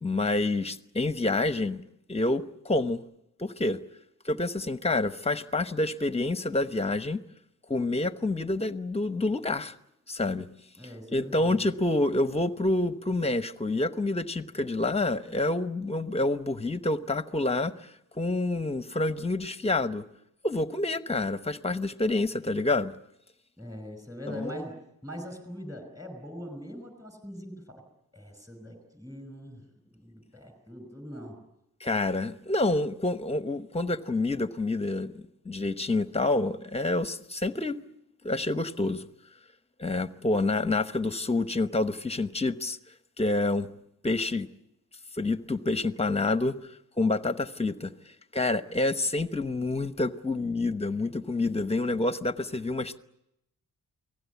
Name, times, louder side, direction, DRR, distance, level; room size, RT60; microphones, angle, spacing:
voice 1, 0.0-1.8 2.1-3.0 3.4-3.8 4.2-7.2 7.7-9.7 10.1-10.5 11.1-20.0 20.4-22.9 24.3-24.6 31.8-37.8 38.2-39.1 39.8-42.8 43.2-43.7 44.0-44.5 45.2-46.5 47.0-47.9 48.3-53.0, left 2 dB, 15° left, 0.9 m, -28 dB
voice 2, 10.8-11.6 23.6-24.8 25.0-27.8 28.1-29.6 29.9-31.4, equal, 10° right, 5.3 m, -42 dB
29.0 x 19.0 x 8.3 m
wide cardioid pair, 155°, 36 cm